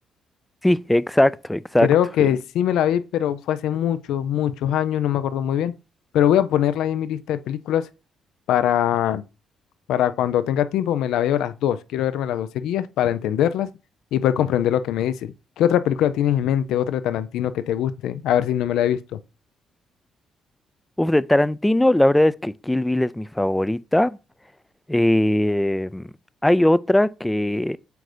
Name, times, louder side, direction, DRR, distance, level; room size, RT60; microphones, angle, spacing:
voice 1, 0.6-1.9 2.2-2.3 21.0-24.2 24.9-26.1 26.4-27.8, left 1 dB, 10° left, 0.3 m, -20 dB
voice 2, 1.8-5.7 6.1-7.9 8.5-9.2 9.9-13.7 14.1-19.2, left 10 dB, 85° left, 0.4 m, -22 dB
7.7 x 2.6 x 5.0 m
cardioid pair, 90°, 0 cm